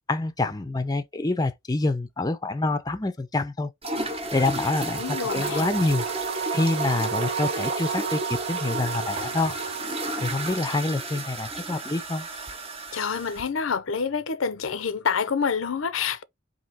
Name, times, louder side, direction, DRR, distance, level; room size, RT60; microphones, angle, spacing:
voice 1, 0.1-3.7 4.3-6.0 6.5-9.5 10.2-12.3, left 2 dB, 20° left, 0.5 m, -26 dB
sound 1, 3.8-13.4, right 2 dB, 30° right, 0.9 m, -33 dB
sound 2, 4.3-10.5, right 7 dB, 55° right, 0.3 m, -33 dB
voice 2, 5.0-5.7 12.9-16.2, left 6 dB, 85° left, 0.6 m, -27 dB
4.3 x 2.8 x 4.0 m
head